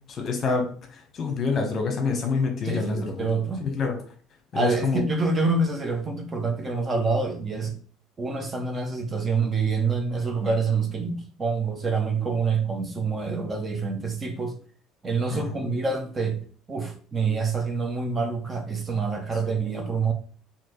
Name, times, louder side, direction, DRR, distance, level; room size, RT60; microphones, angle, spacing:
voice 1, 0.1-0.7 0.9-3.3 3.6-3.9 4.5-5.0 15.3-15.7 19.4-19.5, left 4 dB, 40° left, 1.0 m, -27 dB
voice 2, 2.6-3.7 4.5-7.7 8.2-14.6 15.0-16.4 16.7-20.1, right 4 dB, 25° right, 0.7 m, -26 dB
4.3 x 2.8 x 3.0 m
cardioid pair, 115°, 0 cm